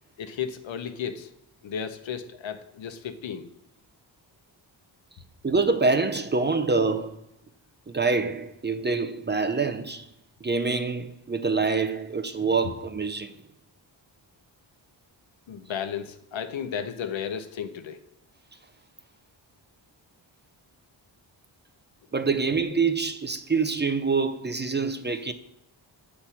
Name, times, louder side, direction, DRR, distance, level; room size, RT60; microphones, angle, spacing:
voice 1, 0.2-1.3 1.6-3.5 15.5-18.0, left 8 dB, 80° left, 0.8 m, -34 dB
voice 2, 5.4-7.2 7.9-10.1 10.4-13.4 22.1-25.3, right 4 dB, 25° right, 0.4 m, -26 dB
8.2 x 4.3 x 5.7 m
wide cardioid pair, 140°, 45 cm